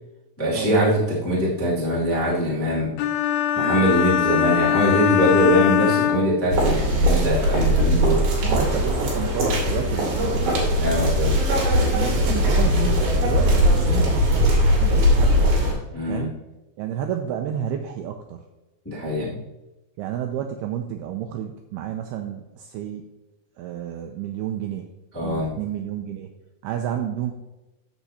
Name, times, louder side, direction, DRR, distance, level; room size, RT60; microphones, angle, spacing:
voice 1, 0.4-2.9 3.5-8.2 10.8-11.3 15.9-16.2 18.8-19.4 25.1-25.5, equal, 15° left, -7 dB, 0.5 m, -22 dB
sound 1, 3.0-6.9, left 10 dB, 85° left, 2.3 m, -22 dB
sound 2, 6.5-15.7, equal, 60° right, 3.8 m, -20 dB
voice 2, 8.4-10.5 11.9-14.5 14.8-15.5 16.1-16.4 16.8-18.4 20.0-23.0 23.6-24.9 25.2-26.3 26.6-27.3, right 10 dB, 85° right, 4 dB, 2.2 m, -30 dB
13.5 x 6.1 x 2.8 m, 1.0 s
omnidirectional pair, 5.1 m